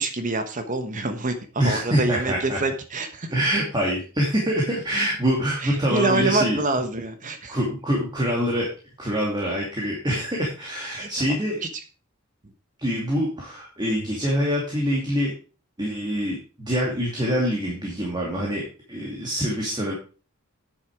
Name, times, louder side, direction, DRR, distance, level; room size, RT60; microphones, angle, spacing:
voice 1, 0.0-3.3 5.6-7.6 11.0-11.8 12.4-12.5, right 2 dB, 35° right, 7 dB, 1.1 m, -27 dB
voice 2, 1.6-2.6 3.3-6.6 7.5-8.7 9.0-11.6 12.8-15.3 15.8-18.6 18.9-19.9, equal, 20° right, -3 dB, 2.6 m, -25 dB
9.7 x 7.1 x 4.8 m, 0.36 s
head